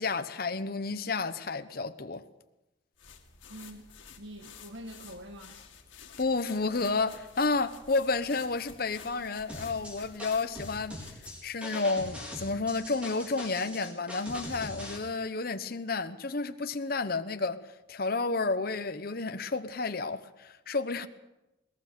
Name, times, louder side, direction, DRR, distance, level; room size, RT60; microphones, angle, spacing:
voice 1, 0.0-2.2 6.2-10.9 11.4-17.6 17.9-21.1, left 3 dB, 50° left, 0.8 m, -31 dB
sound 1, 3.0-11.5, left 6 dB, 75° left, 2.3 m, -51 dB
voice 2, 3.5-3.9 4.2-5.6, equal, 70° right, 1.5 m, -45 dB
sound 2, 9.5-15.0, left 1 dB, 5° right, 4.2 m, -41 dB
21.0 x 19.5 x 6.7 m
head